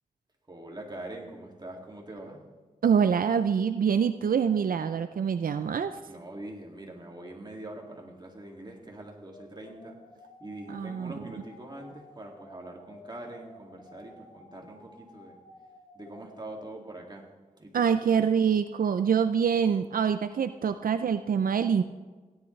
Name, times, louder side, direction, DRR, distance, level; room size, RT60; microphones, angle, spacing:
voice 1, 0.5-2.5 6.0-10.0 10.4-15.4 16.0-18.0, right 1 dB, 30° right, 0 dB, 2.3 m, -43 dB
voice 2, 2.8-5.9 10.7-11.1 17.7-21.8, right 7 dB, 80° right, 10 dB, 0.4 m, -25 dB
sound 1, 9.3-16.7, left 1 dB, 50° left, 3.9 m, -53 dB
16.5 x 10.5 x 3.2 m, 1.4 s
wide cardioid pair, 75°, 15 cm